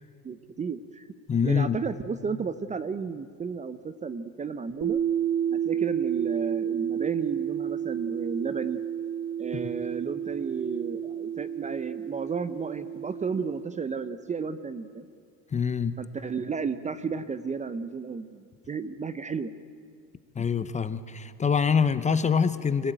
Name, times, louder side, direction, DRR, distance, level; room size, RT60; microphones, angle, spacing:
voice 1, 0.2-1.1 1.4-5.0 5.5-8.8 9.4-15.1 16.0-19.5, right 5 dB, 20° right, 13 dB, 0.6 m, -33 dB
voice 2, 1.3-1.8 9.5-9.7 15.5-16.0 20.3-22.9, left 6 dB, 20° left, 13 dB, 0.7 m, -25 dB
sound 1, 4.8-13.6, right 9 dB, 45° right, 2.7 m, -31 dB
26.0 x 16.0 x 9.0 m, 2.1 s
cardioid pair, 125°, 38 cm